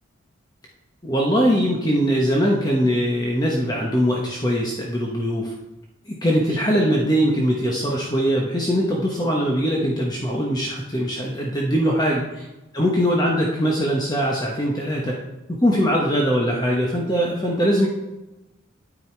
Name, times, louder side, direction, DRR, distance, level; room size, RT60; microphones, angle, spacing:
voice 1, 1.0-5.5 6.1-12.5 12.7-15.2 15.5-17.9, equal, 20° left, -2 dB, 1.2 m, -21 dB
9.5 x 9.3 x 4.6 m, 1.0 s
head